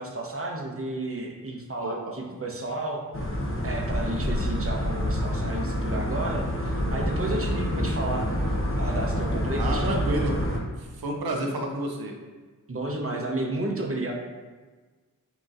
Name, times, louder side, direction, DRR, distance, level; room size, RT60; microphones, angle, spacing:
voice 1, 0.0-3.0 3.6-8.3 8.7-10.0 12.7-14.1, right 2 dB, 40° right, 0 dB, 0.9 m, -32 dB
voice 2, 1.8-2.1 9.6-10.3 10.8-12.2, right 2 dB, 80° right, 2 dB, 0.7 m, -30 dB
sound 1, 3.1-10.6, equal, 35° left, 0.8 m, -27 dB
6.5 x 3.0 x 2.5 m, 1.4 s
wide cardioid pair, 50°, 36 cm